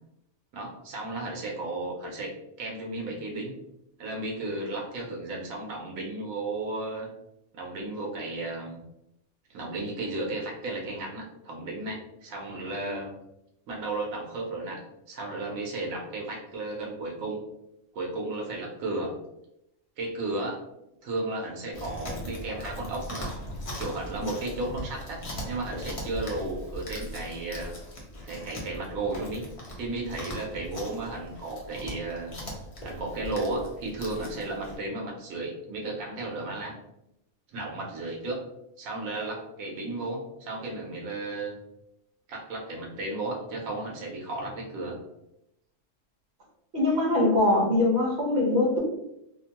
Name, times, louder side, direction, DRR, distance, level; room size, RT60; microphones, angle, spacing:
voice 1, 0.5-2.3 2.6-3.5 4.0-7.1 7.5-8.8 9.5-13.1 13.7-14.8 15.1-17.4 17.9-19.1 20.0-20.6 21.0-23.3 23.8-27.7 28.2-29.4 29.8-32.3 32.8-36.7 37.5-38.4 38.8-41.5 42.3-45.0, right 2 dB, 90° right, -1 dB, 1.1 m, -34 dB
Chewing mastication, 21.7-34.8, equal, 40° left, 0.5 m, -39 dB
voice 2, 46.7-48.8, left 2 dB, 55° right, -3 dB, 1.1 m, -22 dB
2.7 x 2.1 x 2.8 m, 0.84 s
omnidirectional pair, 1.4 m